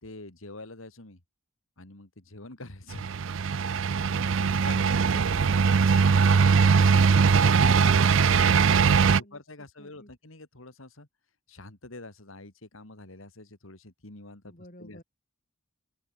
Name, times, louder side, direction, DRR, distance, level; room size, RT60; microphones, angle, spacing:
voice 1, 0.0-1.2 1.8-3.1 3.5-5.0 6.3-6.6 7.6-11.1 11.5-15.0, left 2 dB, 85° left, 2.9 m, -46 dB
sound 1, 2.9-9.2, right 5 dB, 70° right, 0.5 m, -21 dB
voice 2, 4.7-8.0 8.9-9.4 9.8-10.1 14.4-15.0, left 1 dB, 40° left, 7.9 m, -48 dB
open air
head